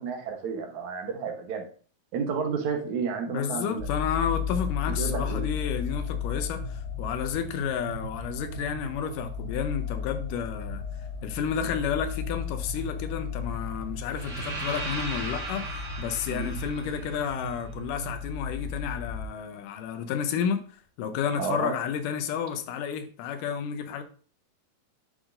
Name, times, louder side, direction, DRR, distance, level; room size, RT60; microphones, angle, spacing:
voice 1, 0.0-1.7 2.1-3.9 5.0-5.4 16.3-16.5 21.4-21.8, right 5 dB, 70° right, 2.3 m, -31 dB
voice 2, 3.3-10.8 11.2-20.6 21.0-24.0, left 7 dB, 90° left, 2.3 m, -31 dB
sound 1, 3.8-19.2, left 6 dB, 50° left, 0.8 m, -35 dB
sound 2, 14.1-18.1, right 2 dB, 25° right, 1.9 m, -37 dB
9.8 x 6.3 x 2.6 m
omnidirectional pair, 3.8 m